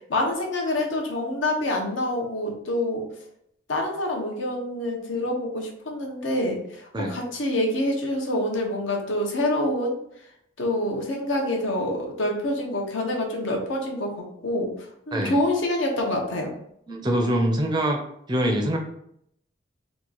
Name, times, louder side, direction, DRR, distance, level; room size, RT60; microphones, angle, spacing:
voice 1, 0.1-3.1 3.7-10.0 10.6-16.5, left 1 dB, 90° left, 1 dB, 0.8 m, -26 dB
voice 2, 16.9-18.0 18.3-18.8, right 1 dB, 20° right, 3 dB, 0.4 m, -24 dB
2.9 x 2.4 x 3.8 m, 0.71 s
head